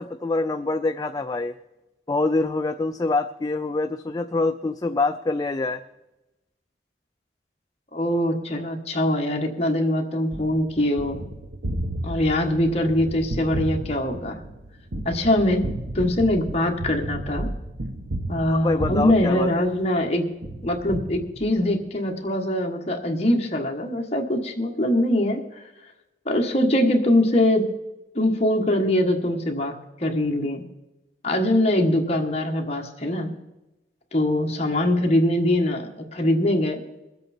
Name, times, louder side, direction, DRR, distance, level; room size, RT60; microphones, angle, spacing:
voice 1, 0.0-1.5 2.1-5.8 18.5-19.7, left 3 dB, 20° left, 8 dB, 0.3 m, -25 dB
voice 2, 7.9-11.2 12.0-14.4 15.0-15.7 15.9-17.5 18.3-20.2 20.6-25.4 26.2-27.7 28.1-29.7 30.0-30.6 31.2-33.3 34.1-36.8, left 1 dB, 35° left, 1 dB, 1.5 m, -22 dB
Gunshot gunfire, 10.3-20.0 20.4-21.8, right 1 dB, 90° right, 1.3 m, -33 dB
22.0 x 8.0 x 4.4 m, 1.0 s
head